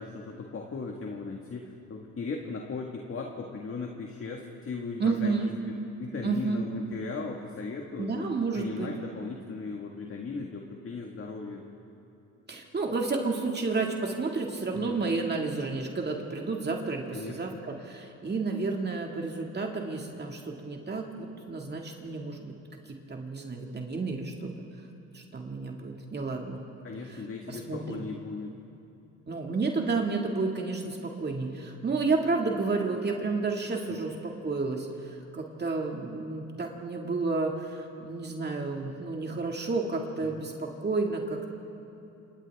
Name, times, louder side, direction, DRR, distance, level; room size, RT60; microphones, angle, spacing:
voice 1, 0.0-5.5 6.0-8.3 8.5-11.6 14.7-15.0 17.1-17.6 26.8-28.5 33.9-34.0 40.2-40.4, left 4 dB, 45° left, 1 dB, 1.8 m, -37 dB
voice 2, 5.0-5.5 6.2-6.6 8.0-8.9 12.5-24.5 25.1-26.6 27.1-27.2 27.5-28.1 29.3-41.5, right 3 dB, 35° right, 1 dB, 2.2 m, -31 dB
28.0 x 26.5 x 3.6 m, 2.8 s
cardioid pair, 90°, 30 cm